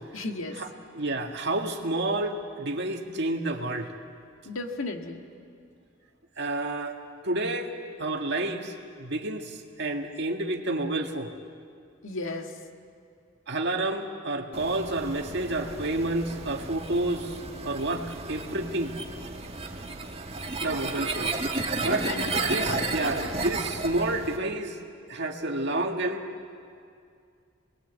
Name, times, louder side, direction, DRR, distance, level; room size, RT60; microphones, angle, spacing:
voice 1, 0.1-0.6 4.5-5.2 12.0-12.5 21.8-23.4, left 2 dB, 85° left, 4 dB, 1.9 m, -35 dB
voice 2, 0.9-3.9 6.4-7.0 7.2-7.7 8.0-8.7 9.0-11.3 13.5-17.4 17.6-18.9 20.6-21.3 21.8-22.1 22.3-24.8 25.1-26.2, right 2 dB, 60° right, 3 dB, 1.9 m, -29 dB
sound 1, 14.5-24.4, right 3 dB, 30° right, 1.7 m, -33 dB
26.5 x 20.5 x 8.2 m, 2.3 s
head